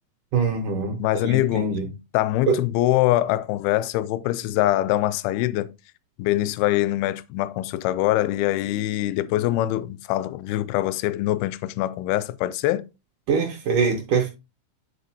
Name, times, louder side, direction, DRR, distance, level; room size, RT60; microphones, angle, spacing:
voice 1, 0.3-1.9 2.4-2.6 13.3-14.3, right 5 dB, 70° right, 2.1 m, -23 dB
voice 2, 1.0-1.7 2.1-5.7 6.2-12.8, left 15 dB, 80° left, 2.3 m, -23 dB
10.0 x 4.0 x 2.7 m
omnidirectional pair, 4.6 m